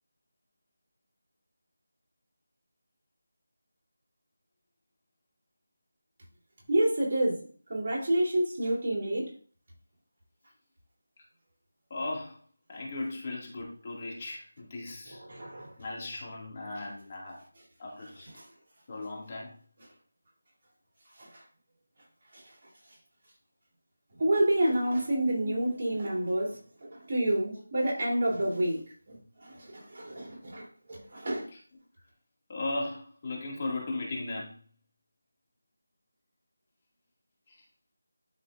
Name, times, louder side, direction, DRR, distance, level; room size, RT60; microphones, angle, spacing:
voice 1, 6.7-7.4 7.7-9.3 15.3-15.7 24.2-26.5 26.8-28.8 29.4-30.6 30.9-31.5, right 1 dB, 30° right, 2.9 m, -28 dB
voice 2, 11.9-12.4 12.7-15.2 15.8-17.4 17.8-18.3 18.9-19.5 24.6-26.0 27.4-27.6 28.1-28.2 31.5-31.6 32.5-34.6 37.5-37.6, left 2 dB, 30° left, 2.0 m, -37 dB
11.5 x 4.3 x 2.4 m
figure-of-eight pair, 170°, 0 cm